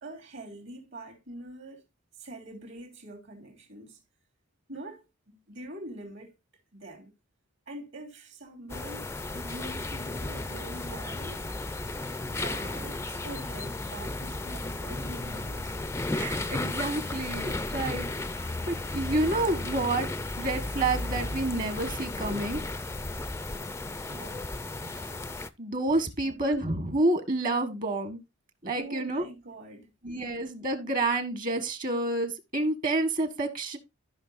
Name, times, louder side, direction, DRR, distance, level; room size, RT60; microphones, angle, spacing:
voice 1, 0.0-1.9 2.2-4.0 4.7-6.4 6.7-7.1 7.7-9.1 9.3-11.5 12.3-15.8 24.1-24.5 26.0-26.4 28.7-29.9, right 1 dB, 60° right, 3.1 m, -44 dB
sound 1, 8.7-25.5, left 2 dB, 15° left, 0.5 m, -34 dB
voice 2, 16.1-18.1 18.7-20.1 20.4-22.6 24.8-25.1 25.6-28.2 28.6-29.3 30.0-33.8, right 2 dB, 40° right, 1.5 m, -29 dB
14.5 x 5.5 x 2.5 m
head